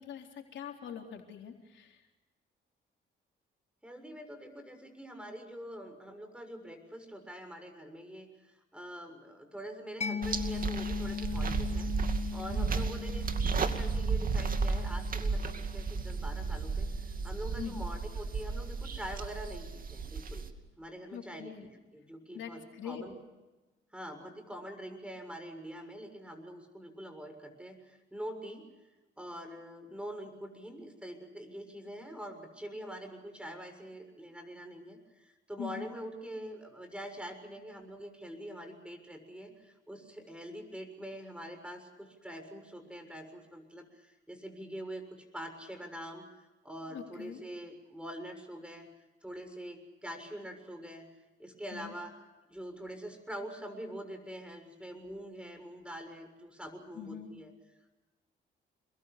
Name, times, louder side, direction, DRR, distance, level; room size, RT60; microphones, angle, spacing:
voice 1, 0.0-2.0 12.5-12.8 17.6-17.9 21.1-21.7 22.3-23.0 35.6-35.8 46.9-47.4 51.7-51.9 56.9-57.3, left 8 dB, 70° left, 2 dB, 4.0 m, -43 dB
voice 2, 3.8-11.9 12.3-13.3 13.5-20.4 20.8-21.5 21.9-23.1 23.9-28.7 29.2-48.9 49.2-51.1 51.4-52.2 52.5-57.5, equal, 5° right, 7 dB, 6.8 m, -44 dB
Mallet percussion, 10.0-17.4, left 6 dB, 35° left, 1.3 m, -40 dB
sound 1, 10.2-20.5, right 4 dB, 45° right, 2.4 m, -33 dB
28.0 x 22.0 x 6.8 m, 1.1 s
cardioid pair, 90°, 20 cm